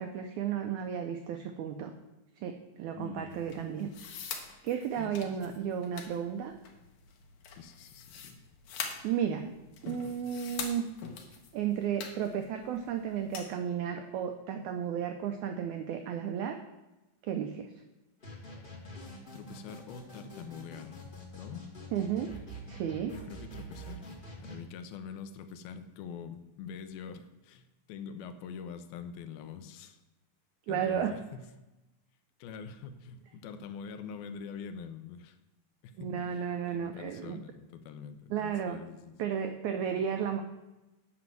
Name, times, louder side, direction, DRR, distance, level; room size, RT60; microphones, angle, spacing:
voice 1, 0.0-1.9 2.4-3.9 4.3-6.5 9.0-9.5 9.8-10.9 11.5-16.6 17.2-17.7 21.9-22.3 22.7-23.1 30.7-31.1 36.0-37.4 38.3-38.8 39.2-40.4, right 8 dB, 85° right, 6 dB, 1.6 m, -33 dB
voice 2, 2.9-3.6 5.0-5.6 7.5-8.4 19.3-21.6 23.1-24.1 24.4-30.0 30.7-31.5 32.4-35.4 35.8-39.1 39.7-40.0, left 6 dB, 85° left, 9 dB, 2.7 m, -45 dB
sound 1, 3.3-13.5, left 6 dB, 70° left, 2.7 m, -44 dB
sound 2, 18.2-24.6, equal, 40° left, 0.7 m, -46 dB
8.6 x 6.0 x 7.7 m, 1.0 s
omnidirectional pair, 4.2 m